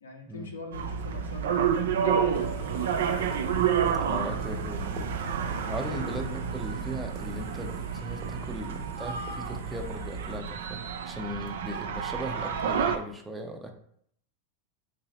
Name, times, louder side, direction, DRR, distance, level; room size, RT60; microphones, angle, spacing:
voice 1, 0.0-3.2 4.0-4.7 5.9-6.4, left 2 dB, 85° left, 2 dB, 0.7 m, -42 dB
sound 1, 0.7-13.0, right 7 dB, 75° right, 0.4 m, -30 dB
sound 2, 2.3-10.4, right 2 dB, 40° right, 1.1 m, -41 dB
voice 2, 4.1-5.0 5.7-10.8 11.1-13.7, right 1 dB, 10° right, 4 dB, 0.6 m, -38 dB
3.1 x 2.7 x 4.1 m, 0.66 s
hypercardioid pair, 95°, 0 cm